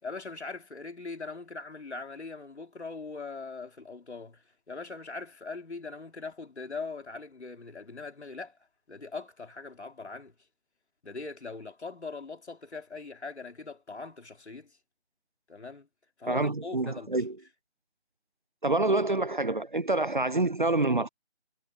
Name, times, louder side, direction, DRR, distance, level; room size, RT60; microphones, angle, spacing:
voice 1, 0.0-8.6 8.9-10.3 11.0-14.8 15.5-15.9 16.2-17.2, left 4 dB, 75° left, 3.4 m, -41 dB
voice 2, 16.3-17.3 18.6-21.1, right 2 dB, 45° right, 0.5 m, -27 dB
figure-of-eight pair, 175°, 35 cm